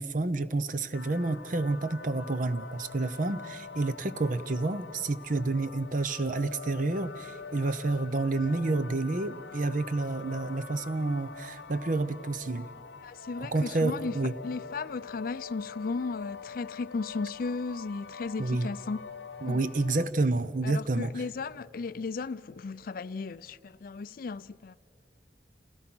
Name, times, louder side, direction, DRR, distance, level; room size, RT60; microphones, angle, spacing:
voice 1, 0.0-12.7 13.4-14.3 18.4-18.7 19.4-21.1, right 2 dB, 45° right, 0.7 m, -29 dB
sound 1, 0.9-20.1, left 5 dB, 65° left, 0.9 m, -45 dB
voice 2, 13.0-14.1 14.4-19.0 19.5-19.6 20.6-24.8, left 4 dB, 50° left, 0.4 m, -35 dB
28.5 x 17.0 x 6.1 m
head